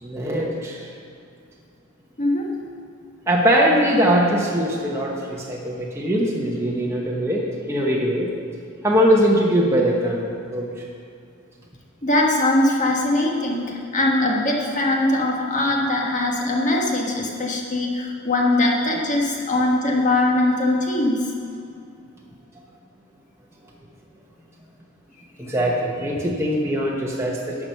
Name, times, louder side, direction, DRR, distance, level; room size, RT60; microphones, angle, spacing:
voice 1, 0.0-0.8 3.3-7.4 7.7-8.3 8.8-10.7 25.4-27.6, equal, 15° right, -3 dB, 1.0 m, -21 dB
voice 2, 2.2-2.5 12.0-21.3, left 1 dB, 35° left, -1 dB, 1.5 m, -21 dB
10.5 x 6.0 x 6.7 m, 2.4 s
head